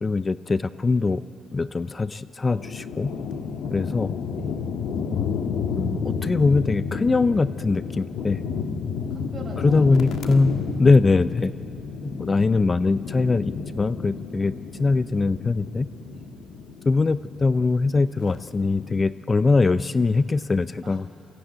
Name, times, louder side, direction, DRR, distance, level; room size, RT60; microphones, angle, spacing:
voice 1, 0.0-1.2 1.5-3.1 3.7-4.1 5.8-8.4 9.6-11.5 12.0-14.5 14.8-15.9 16.9-21.1, left 3 dB, 30° left, 15 dB, 0.4 m, -22 dB
sound 1, 2.4-19.0, left 6 dB, 80° left, 1.4 m, -31 dB
voice 2, 3.0-3.6 4.0-4.6 8.4-10.2 10.5-11.2 11.9-12.4 14.4-14.7 16.1-16.3 20.8-21.1, right 2 dB, 35° right, 0 dB, 5.4 m, -43 dB
23.0 x 15.5 x 8.7 m, 2.7 s
cardioid pair, 90°, 0 cm